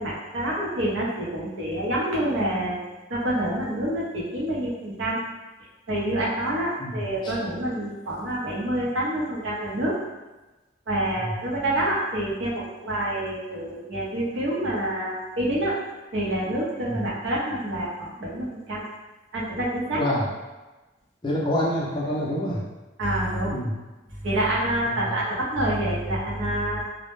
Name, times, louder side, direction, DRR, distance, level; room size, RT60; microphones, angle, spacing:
voice 1, 0.0-2.8 3.1-5.2 5.9-9.9 10.9-15.8 16.1-18.8 19.3-20.0 23.0-23.5 24.2-26.8, right 1 dB, 75° right, -4 dB, 0.6 m, -27 dB
voice 2, 6.8-7.3 11.2-11.3 16.9-17.0 19.9-20.3 21.2-22.7 23.4-23.8 24.9-25.2, equal, 25° left, -4 dB, 0.4 m, -27 dB
2.1 x 2.0 x 3.0 m, 1.1 s
head